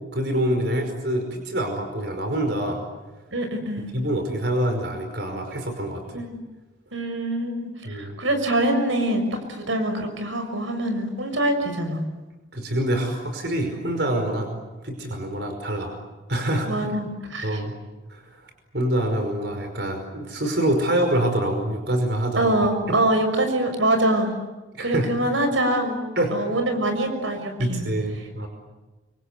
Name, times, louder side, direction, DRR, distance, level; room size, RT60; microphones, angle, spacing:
voice 1, 0.1-2.8 3.9-6.2 7.9-8.2 12.5-16.0 16.3-16.7 17.4-17.7 18.1-18.3 18.7-22.5 22.9-23.0 24.7-25.1 26.2-26.3 27.6-28.5, right 1 dB, 60° right, 5 dB, 5.2 m, -25 dB
voice 2, 3.3-3.9 6.1-6.4 6.9-9.2 9.5-12.0 16.7-17.6 22.4-24.3 24.8-26.0 26.3-27.8, right 1 dB, 85° right, 6 dB, 6.2 m, -24 dB
29.0 x 24.5 x 8.3 m, 1.1 s
head